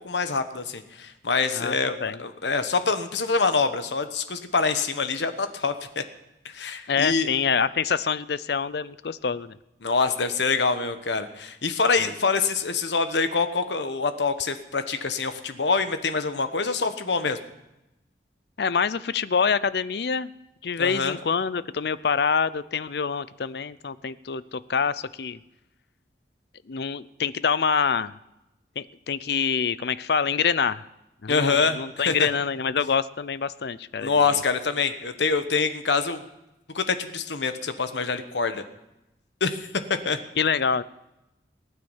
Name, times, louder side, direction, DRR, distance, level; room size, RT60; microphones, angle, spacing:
voice 1, 0.0-6.0 6.5-7.3 9.8-17.4 20.8-21.1 31.3-31.8 32.0-32.3 34.0-36.2 36.7-38.6 39.4-39.6 40.0-40.2, left 4 dB, 85° left, 9 dB, 1.2 m, -25 dB
voice 2, 1.5-2.2 6.9-9.5 12.0-12.1 18.6-20.3 20.6-25.4 26.7-28.1 28.8-30.8 31.2-34.1 40.4-40.8, left 6 dB, 65° left, 17 dB, 0.5 m, -26 dB
19.5 x 9.5 x 7.3 m, 0.93 s
head